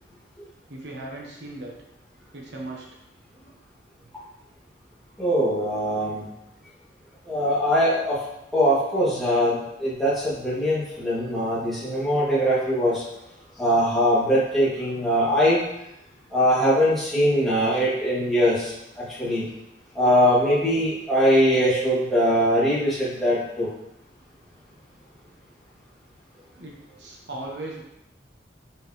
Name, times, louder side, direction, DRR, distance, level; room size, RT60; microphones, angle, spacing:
voice 1, 0.7-1.7 2.3-2.8 26.6-27.8, right 2 dB, 65° right, -1 dB, 1.0 m, -37 dB
voice 2, 5.2-6.3 7.3-8.2 8.5-13.0 13.6-15.6 16.3-19.5 19.9-23.7, equal, ahead, -10 dB, 2.1 m, -22 dB
6.0 x 5.3 x 3.0 m, 0.85 s
head